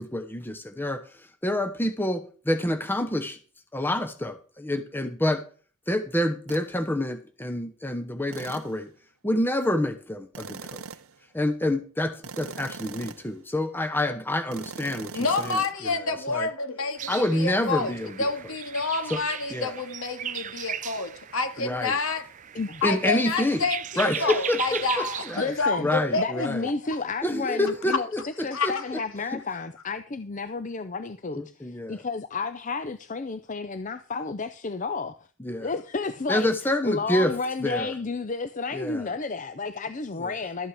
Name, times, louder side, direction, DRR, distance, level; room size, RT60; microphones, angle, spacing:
voice 1, 0.0-3.4 3.7-5.4 5.9-8.9 9.2-10.8 11.3-15.6 16.3-16.5 17.1-18.3 19.1-19.2 19.5-19.7 21.6-22.0 22.8-23.6 24.0-25.5 25.8-26.7 27.2-29.0 29.3-29.4 31.4-32.0 35.4-35.7 36.3-37.3 37.6-37.9 38.7-39.0 40.2-40.3, left 1 dB, 10° left, 0.9 m, -28 dB
sound 1, 6.5-6.7 8.3-8.8 10.3-11.2 12.2-13.4 14.5-15.7, right 5 dB, 70° right, 0.7 m, -40 dB
voice 2, 15.1-17.9 18.2-22.2 22.8-26.7 28.5-28.8, left 3 dB, 70° left, 2.0 m, -28 dB
sound 2, 17.0-25.7, right 9 dB, 35° right, 0.5 m, -37 dB
voice 3, 25.3-25.9 26.2-28.1 28.4-35.2 35.6-36.5 36.8-40.7, left 4 dB, 35° left, 0.5 m, -31 dB
13.0 x 8.6 x 4.8 m
head